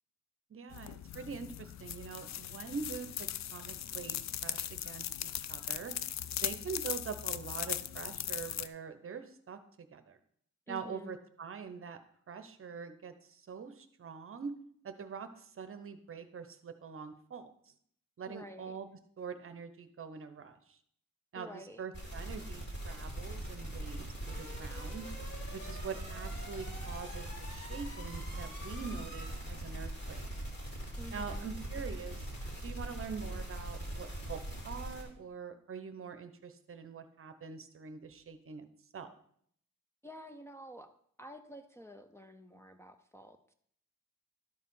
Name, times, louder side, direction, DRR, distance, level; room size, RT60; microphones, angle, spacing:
voice 1, 0.5-4.2 4.4-6.0 6.3-9.6 9.9-10.2 10.7-12.0 12.3-14.5 14.8-17.5 18.2-18.9 19.2-20.8 21.3-25.1 25.5-30.3 31.1-32.3 32.6-38.7 38.9-39.2, right 6 dB, 45° right, 10 dB, 0.8 m, -44 dB
sound 1, 0.7-8.7, left 10 dB, 65° left, 0.5 m, -39 dB
voice 2, 10.7-11.2 18.3-18.8 21.3-21.8 31.0-31.5 40.0-40.9 41.2-43.5, equal, 10° left, 4 dB, 0.5 m, -50 dB
sound 2, 21.9-35.0, right 1 dB, 35° left, 2.8 m, -41 dB
12.0 x 4.8 x 5.5 m, 0.64 s
wide cardioid pair, 135°, 29 cm